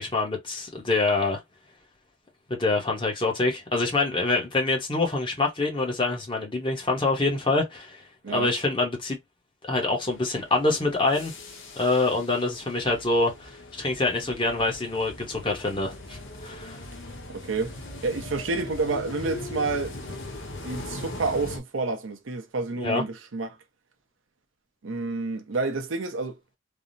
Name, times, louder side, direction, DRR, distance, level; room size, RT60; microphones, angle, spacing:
voice 1, 0.0-1.4 2.5-8.0 8.3-9.2 9.6-11.3 11.8-16.8 22.8-23.0, left 3 dB, 25° left, 0.9 m, -25 dB
sound 1, 10.0-21.6, left 2 dB, 70° left, 0.9 m, -40 dB
voice 2, 17.3-17.8 18.0-20.1 20.6-23.6 24.8-26.4, right 3 dB, 80° right, 0.6 m, -29 dB
3.4 x 2.0 x 2.5 m
head